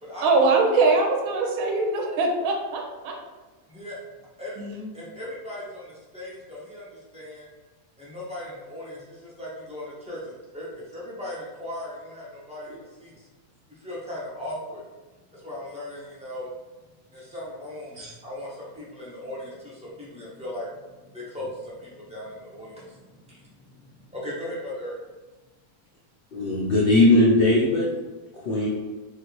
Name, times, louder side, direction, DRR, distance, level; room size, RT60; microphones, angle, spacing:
voice 1, 0.2-3.2 4.6-4.8, right 3 dB, 70° right, 2 dB, 1.0 m, -22 dB
voice 2, 4.9-7.5 8.0-13.3 13.7-14.8 15.3-16.5 17.1-25.0 28.5-28.6, left 1 dB, 10° right, -8 dB, 0.3 m, -38 dB
voice 3, 26.3-27.9 28.3-28.7, left 1 dB, 75° left, -5 dB, 0.5 m, -19 dB
3.2 x 2.4 x 2.9 m, 1.2 s
omnidirectional pair, 1.6 m